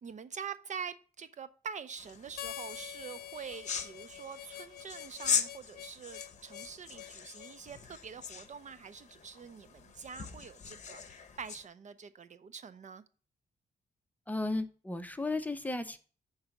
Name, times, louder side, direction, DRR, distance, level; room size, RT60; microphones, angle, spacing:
voice 1, 0.0-13.0, right 6 dB, 50° right, 0.6 m, -45 dB
sound 1, 2.0-11.7, left 7 dB, 50° left, 0.8 m, -40 dB
Harmonica, 2.4-7.6, left 11 dB, 75° left, 0.4 m, -46 dB
voice 2, 14.3-16.0, left 2 dB, 10° left, 0.7 m, -34 dB
7.1 x 4.0 x 6.4 m
cardioid pair, 110°, 16 cm